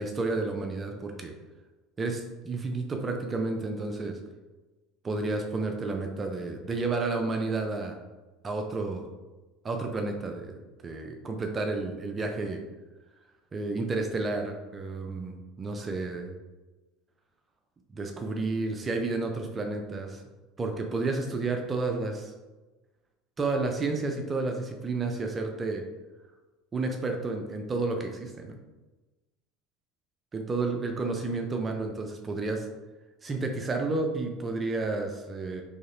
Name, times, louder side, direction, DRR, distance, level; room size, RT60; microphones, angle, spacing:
voice 1, 0.0-1.3 2.0-4.2 5.0-8.0 8.4-9.1 9.6-12.6 13.5-16.3 17.9-20.2 20.6-22.3 23.4-25.8 26.7-28.6 30.3-32.7 33.2-35.6, right 3 dB, 30° right, 3 dB, 0.5 m, -31 dB
3.9 x 3.2 x 2.5 m, 1.2 s
hypercardioid pair, 80°, 0 cm